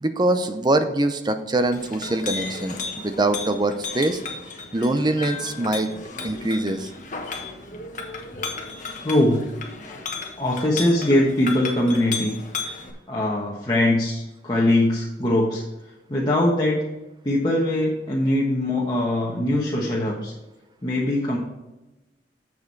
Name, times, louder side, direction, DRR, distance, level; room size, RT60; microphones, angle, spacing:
voice 1, 0.0-4.2 4.7-5.9 6.2-6.9, right 2 dB, 25° right, 9 dB, 0.6 m, -23 dB
Chink clink, 1.6-12.9, left 4 dB, 45° left, 1.2 m, -34 dB
voice 2, 9.0-9.5 10.4-12.3 13.1-15.6 16.1-16.9 17.2-20.3 20.8-21.4, left 1 dB, 25° left, -5 dB, 1.3 m, -22 dB
7.5 x 6.9 x 4.6 m, 1.0 s
head